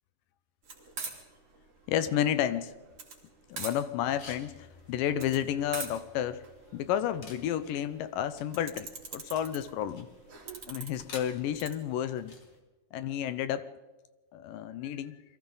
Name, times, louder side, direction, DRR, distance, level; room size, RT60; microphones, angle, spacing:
sound 1, 0.7-11.7, right 4 dB, 40° right, 3.9 m, -45 dB
voice 1, 1.9-2.7 3.5-6.4 6.7-10.1 10.7-12.4 12.9-13.7 14.3-15.2, left 10 dB, 75° left, 13 dB, 2.3 m, -31 dB
sound 2, 4.0-12.6, left 4 dB, 40° left, 2.6 m, -53 dB
28.5 x 23.0 x 4.0 m, 1.2 s
omnidirectional pair, 4.1 m